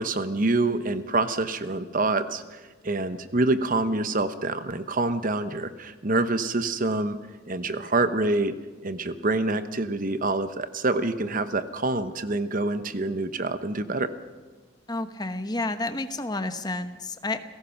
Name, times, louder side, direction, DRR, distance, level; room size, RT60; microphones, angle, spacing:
voice 1, 0.0-7.2 7.5-8.5 8.8-14.1, right 2 dB, 45° right, 11 dB, 1.0 m, -26 dB
voice 2, 14.9-17.4, left 2 dB, 20° left, 9 dB, 1.1 m, -30 dB
30.0 x 17.0 x 5.9 m, 1.3 s
head